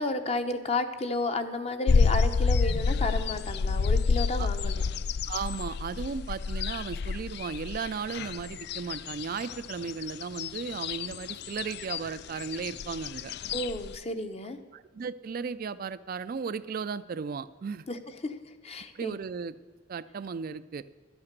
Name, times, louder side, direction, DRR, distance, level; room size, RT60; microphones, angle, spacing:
voice 1, 0.0-4.8 13.5-14.6 17.9-19.2, left 2 dB, 35° left, 8 dB, 0.8 m, -32 dB
sound 1, 1.9-14.0, left 5 dB, 60° left, 0.4 m, -29 dB
voice 2, 5.3-13.3 14.7-17.9 18.9-19.5 19.9-20.8, right 5 dB, 50° right, 13 dB, 0.4 m, -35 dB
11.5 x 8.6 x 6.6 m, 1.5 s
head